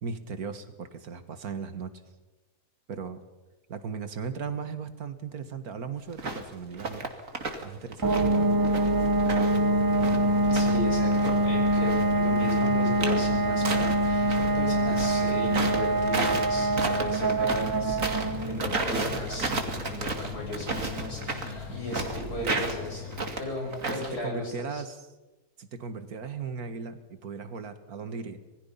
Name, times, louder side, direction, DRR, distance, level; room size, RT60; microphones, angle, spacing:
voice 1, 0.0-1.9 2.9-3.2 3.7-7.1 7.6-8.2 23.9-24.0 24.2-25.1 25.6-28.4, right 5 dB, 75° right, 10 dB, 2.1 m, -37 dB
sound 1, 6.1-6.4 6.7-7.7 7.9-10.8 11.1-14.5 14.9-24.2, right 3 dB, 60° right, 2.7 m, -33 dB
sound 2, 8.0-22.6, right 1 dB, 25° right, 0.4 m, -25 dB
sound 3, 9.5-23.3, left 9 dB, 70° left, 2.7 m, -41 dB
voice 2, 10.5-19.5 19.8-23.0 23.4-24.8, left 1 dB, 90° left, 0 dB, 7.9 m, -36 dB
26.5 x 21.5 x 5.7 m, 1.1 s
omnidirectional pair, 1.6 m